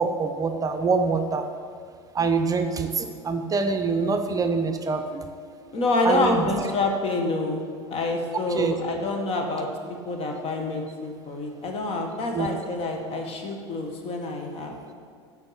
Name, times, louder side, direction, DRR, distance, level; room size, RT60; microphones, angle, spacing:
voice 1, 0.0-1.5 2.1-5.3 6.0-6.5 8.5-8.8 12.3-12.5, right 4 dB, 25° right, 7 dB, 0.6 m, -25 dB
voice 2, 5.7-7.6 7.9-9.7 10.0-14.7, left 2 dB, 45° left, 3 dB, 1.6 m, -27 dB
9.6 x 6.3 x 5.8 m, 2.1 s
hypercardioid pair, 75°, 14 cm